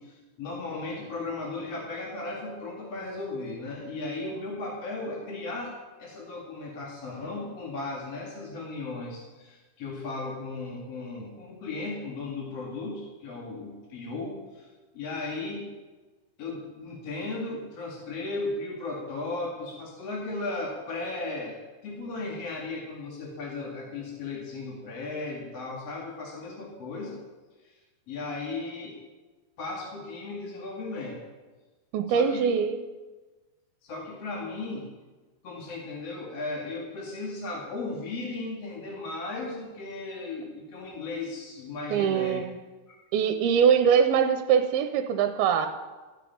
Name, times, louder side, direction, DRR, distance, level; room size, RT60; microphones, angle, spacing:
voice 1, 0.0-5.7 6.0-14.7 14.9-15.7 16.4-27.2 27.6-27.7 28.1-29.0 29.6-31.2 32.1-32.4 33.8-34.9 35.4-42.4 42.9-43.0, left 3 dB, 45° left, -3 dB, 2.9 m, -36 dB
voice 2, 31.9-32.8 41.9-42.5 43.1-45.7, right 7 dB, 75° right, 7 dB, 2.6 m, -23 dB
15.0 x 7.5 x 8.6 m, 1.3 s
omnidirectional pair, 4.7 m